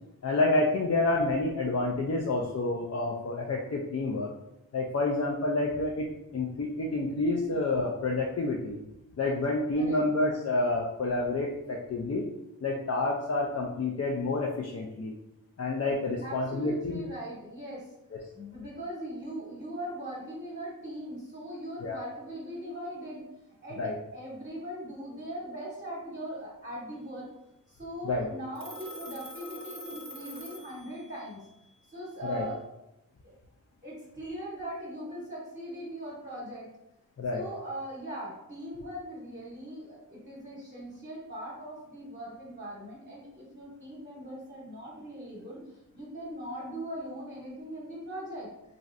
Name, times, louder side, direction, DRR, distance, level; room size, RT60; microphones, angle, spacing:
voice 1, 0.2-4.3 4.7-6.1 6.3-8.8 9.2-12.2 12.6-15.1 15.6-17.0 18.1-18.2 21.8-22.0 23.8-24.0 28.0-28.3 32.2-32.5 37.2-37.4, left 2 dB, 45° left, -2 dB, 0.4 m, -28 dB
voice 2, 16.2-17.9 18.4-23.2 23.6-27.3 27.7-31.4 31.9-32.6 33.2-33.3 33.8-36.7 37.3-45.6 45.9-48.5, equal, 30° right, -6 dB, 0.9 m, -40 dB
Telephone, 28.5-31.3, equal, 65° right, 0.6 m, -44 dB
3.0 x 2.5 x 2.5 m, 0.89 s
wide cardioid pair, 55°, 35 cm